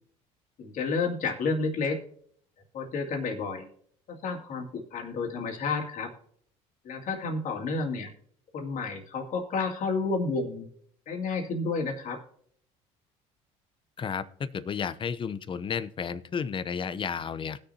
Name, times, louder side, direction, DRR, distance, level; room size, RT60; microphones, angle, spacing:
voice 1, 0.6-2.0 2.7-3.7 4.1-6.1 6.8-8.1 8.5-10.7 11.1-12.2, left 4 dB, 55° left, 2 dB, 2.4 m, -30 dB
voice 2, 14.0-17.6, left 6 dB, 30° left, 14 dB, 0.7 m, -32 dB
19.5 x 6.7 x 2.8 m, 0.63 s
supercardioid pair, 90°, 16 cm